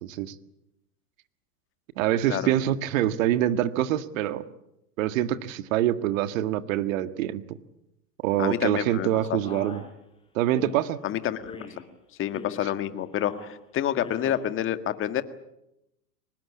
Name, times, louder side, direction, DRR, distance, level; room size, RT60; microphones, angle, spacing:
voice 1, 0.0-0.3 2.0-4.4 5.0-7.6 8.2-9.8 10.4-11.0, right 12 dB, 55° right, 11 dB, 1.8 m, -25 dB
voice 2, 8.4-9.4 11.0-11.5 12.2-15.2, left 11 dB, 25° left, 10 dB, 1.8 m, -28 dB
Male speech man speaking, 9.4-9.9 10.5-10.9 11.5-11.8 12.3-12.7 13.1-13.5 13.9-14.4, left 4 dB, 10° left, 5.9 m, -42 dB
24.0 x 20.5 x 8.6 m, 0.87 s
hypercardioid pair, 125°, 47 cm